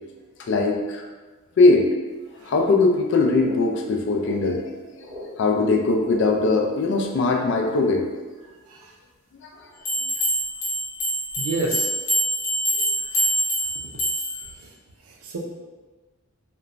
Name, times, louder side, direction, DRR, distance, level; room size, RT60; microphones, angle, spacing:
voice 1, 0.5-1.0 1.6-1.9 2.4-5.1 5.4-8.1, left 3 dB, 55° left, 2 dB, 0.3 m, -20 dB
sound 1, 2.5-2.8 3.1-3.6 4.2-4.4 5.0-5.3 6.0-6.3 6.9-7.1 8.4-8.5 9.8-9.9, left 1 dB, 35° right, 0.9 m, -39 dB
sound 2, 9.8-14.5, equal, 75° left, 0.9 m, -25 dB
voice 2, 11.4-11.9 13.1-13.3 14.6-14.7 15.1-15.4, right 2 dB, 90° right, 0 dB, 0.5 m, -30 dB
2.9 x 2.2 x 2.4 m, 1.3 s
head